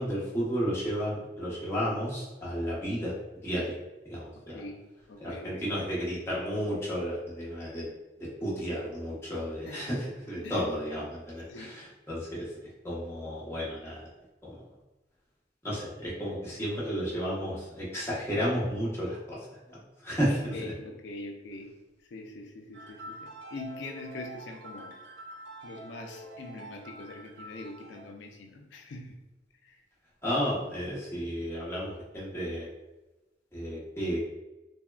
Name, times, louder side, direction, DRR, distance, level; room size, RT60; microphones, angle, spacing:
voice 1, 0.0-3.1 3.4-3.7 4.1-4.6 5.2-7.9 8.2-12.5 12.8-14.1 14.4-14.6 15.6-19.4 19.7-20.7 30.2-32.7 33.5-34.2, equal, 15° left, -7 dB, 0.8 m, -32 dB
voice 2, 4.3-5.7 9.7-9.9 10.4-10.6 11.5-11.7 20.5-21.7 22.1-25.0 25.6-29.2 29.6-29.8, left 2 dB, 80° left, 4 dB, 0.4 m, -43 dB
sound 1, 22.7-28.1, right 1 dB, 85° right, 0.5 m, -46 dB
3.4 x 2.1 x 2.3 m, 1.1 s
head